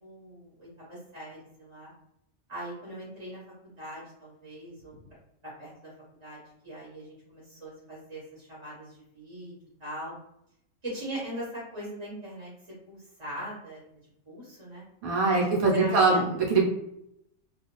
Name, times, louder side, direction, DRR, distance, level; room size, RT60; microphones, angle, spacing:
voice 1, 0.0-1.9 2.5-4.9 5.6-5.9 6.2-10.2 10.8-12.5 12.9-13.8 14.3-14.8 15.3-15.4 15.7-16.3, right 1 dB, 25° right, -6 dB, 0.8 m, -40 dB
voice 2, 15.0-16.6, right 3 dB, 80° right, -2 dB, 1.0 m, -23 dB
2.4 x 2.3 x 2.9 m, 0.78 s
omnidirectional pair, 1.5 m